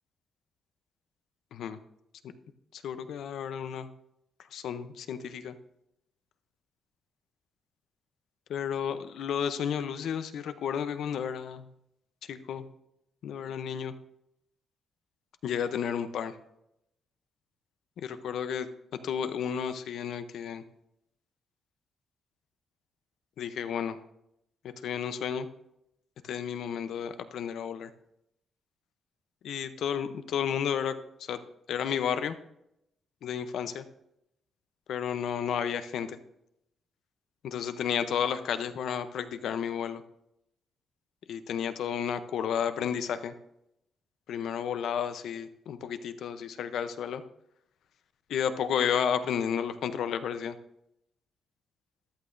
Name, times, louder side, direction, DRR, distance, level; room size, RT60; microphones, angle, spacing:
voice 1, 2.7-3.9 4.5-5.6 8.5-11.7 12.3-12.7 13.2-13.9 15.4-16.3 18.0-18.7 19.0-20.6 23.4-24.0 24.6-25.5 26.2-27.9 29.4-31.4 31.7-32.4 33.2-33.9 34.9-36.2 37.4-40.0 41.3-43.3 44.3-47.2 48.3-50.6, left 8 dB, 65° left, 10 dB, 0.7 m, -32 dB
14.0 x 11.5 x 2.6 m, 0.81 s
wide cardioid pair, 180°, 0 cm